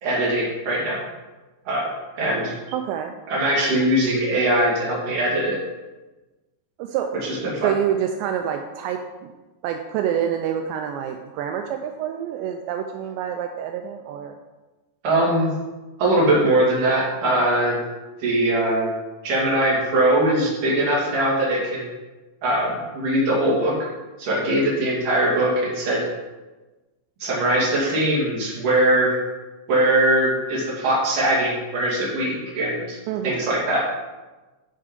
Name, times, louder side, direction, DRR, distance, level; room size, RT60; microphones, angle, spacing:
voice 1, 0.0-1.0 1.7-2.5 3.3-5.6 7.2-7.7 15.0-15.5 16.0-17.8 18.2-18.9 19.2-21.9 22.4-23.7 24.2-26.0 27.2-29.2 29.7-33.0 33.2-33.8, right 1 dB, 50° right, -5 dB, 3.5 m, -21 dB
voice 2, 2.7-3.1 6.8-7.1 7.4-9.3 9.6-14.4 33.1-33.5, right 9 dB, 85° right, 5 dB, 2.6 m, -27 dB
11.0 x 4.6 x 5.2 m, 1.2 s
omnidirectional pair, 5.5 m